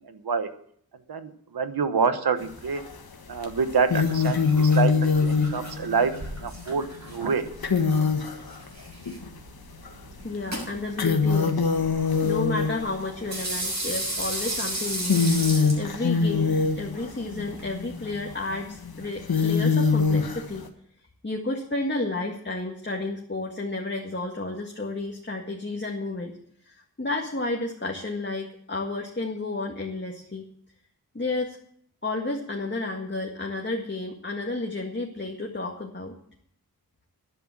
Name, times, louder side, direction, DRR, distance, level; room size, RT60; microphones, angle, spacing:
voice 1, 0.0-0.5 1.1-2.8 3.3-4.9 5.2-6.1 6.4-7.4, right 5 dB, 85° right, 10 dB, 1.1 m, -26 dB
sound 1, 2.4-3.0 3.4-9.3 9.8-9.9 10.4-13.3 14.2-14.4 14.9-20.7, left 5 dB, 75° left, 1.5 m, -24 dB
sound 2, 3.4-17.7, right 1 dB, 45° right, 6.9 m, -36 dB
voice 2, 10.2-11.7 12.2-15.3 15.7-20.7 21.2-26.4 26.7-30.4 31.1-31.6 32.0-36.1, left 2 dB, 30° left, 0 dB, 1.8 m, -31 dB
11.0 x 10.5 x 7.4 m, 0.65 s
cardioid pair, 50°, 37 cm